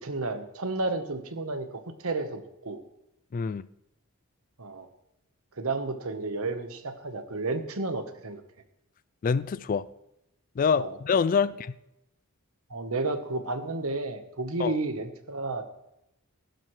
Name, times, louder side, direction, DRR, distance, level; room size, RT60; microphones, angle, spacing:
voice 1, 0.0-2.8 4.6-4.9 5.6-8.4 10.8-11.0 12.7-15.6, right 3 dB, 75° right, 1.2 m, -32 dB
voice 2, 3.3-3.7 9.2-9.9 10.6-11.7 14.6-14.7, left 6 dB, 40° left, 0.3 m, -25 dB
15.5 x 12.0 x 3.3 m
head